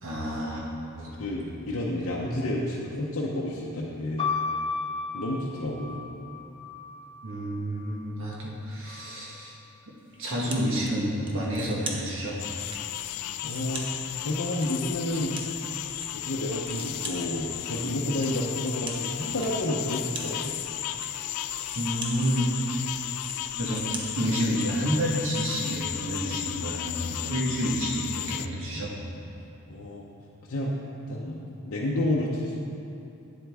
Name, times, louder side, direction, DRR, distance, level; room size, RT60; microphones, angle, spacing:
voice 1, 0.0-1.1 2.0-2.1 7.2-9.5 10.2-12.4 21.7-22.5 23.6-23.8 24.2-28.9, equal, 60° right, -4 dB, 1.3 m, -29 dB
voice 2, 1.2-4.3 5.1-6.0 12.9-13.1 13.4-13.9 14.2-15.4 16.1-20.5 29.7-30.1 30.5-30.8 31.1-32.6, left 1 dB, 60° left, -4 dB, 0.7 m, -30 dB
sound 1, 4.2-8.0 8.8-9.6, left 4 dB, 20° left, 0.6 m, -34 dB
sound 2, 10.2-10.9 11.3-12.8 13.2-16.1 16.4-24.7, right 2 dB, 20° right, 0.7 m, -42 dB
sound 3, 12.4-28.5, left 13 dB, 85° left, 0.3 m, -34 dB
8.9 x 7.5 x 3.5 m, 2.7 s
head